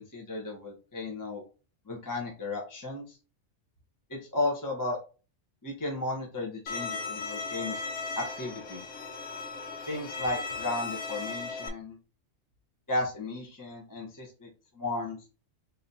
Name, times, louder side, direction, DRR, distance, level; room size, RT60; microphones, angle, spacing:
voice 1, 0.0-1.4 1.9-3.2 4.1-5.0 5.6-7.8 8.2-8.8 9.9-12.0 12.9-14.5 14.7-15.2, left 2 dB, 20° left, -1 dB, 0.8 m, -34 dB
Bowed string instrument, 6.7-11.7, left 4 dB, 90° left, 1.1 m, -37 dB
3.5 x 2.7 x 4.1 m, 0.34 s
omnidirectional pair, 1.2 m